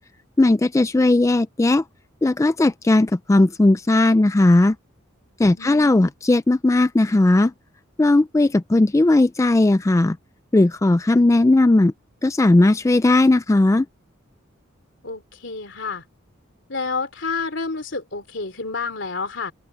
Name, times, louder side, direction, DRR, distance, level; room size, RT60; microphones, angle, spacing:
voice 1, 0.4-1.8 2.2-4.8 5.4-7.5 8.0-10.2 10.5-11.9 12.2-13.9, left 2 dB, 15° left, 0.3 m, -17 dB
voice 2, 5.5-6.1 15.0-16.0 16.7-19.5, left 4 dB, 65° left, 3.5 m, -29 dB
open air
head